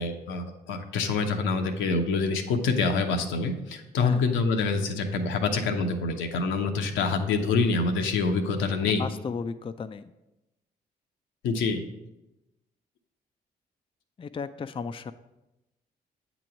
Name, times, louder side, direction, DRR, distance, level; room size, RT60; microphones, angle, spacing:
voice 1, 0.0-9.1 11.4-11.8, left 4 dB, 75° left, 5 dB, 0.7 m, -26 dB
voice 2, 8.8-10.1 14.2-15.1, left 5 dB, 25° left, 10 dB, 0.4 m, -35 dB
8.2 x 3.0 x 6.2 m, 0.95 s
hypercardioid pair, 45°, 20 cm